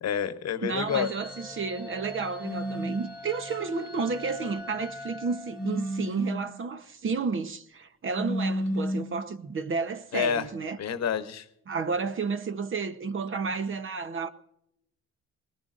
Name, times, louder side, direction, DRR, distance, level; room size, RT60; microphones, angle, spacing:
voice 1, 0.0-1.1 10.1-10.5 10.8-11.5, left 8 dB, 60° left, 1.0 m, -28 dB
voice 2, 0.6-10.8 11.7-14.3, right 4 dB, 40° right, 0.9 m, -31 dB
sound 1, 0.9-6.2, left 2 dB, 5° right, 2.6 m, -43 dB
sound 2, 2.4-3.0 5.5-6.5 8.1-9.2, equal, 75° right, 4.1 m, -31 dB
20.0 x 19.0 x 2.5 m
cardioid pair, 90°, 30 cm